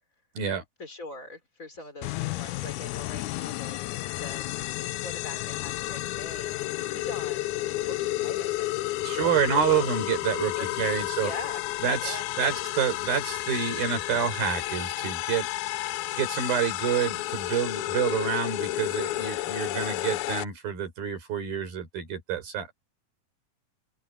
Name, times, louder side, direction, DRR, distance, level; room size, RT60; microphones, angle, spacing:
voice 1, 0.8-3.9 4.2-4.5 4.7-8.7 9.0-9.8 10.5-10.7 11.2-11.6 12.0-12.5, left 2 dB, 20° left, 5.0 m, -43 dB
sound 1, 2.0-20.4, left 17 dB, 85° left, 1.7 m, -31 dB
voice 2, 9.0-11.3 11.8-15.5 16.1-22.7, right 7 dB, 80° right, 6.8 m, -28 dB
open air
omnidirectional pair, 4.1 m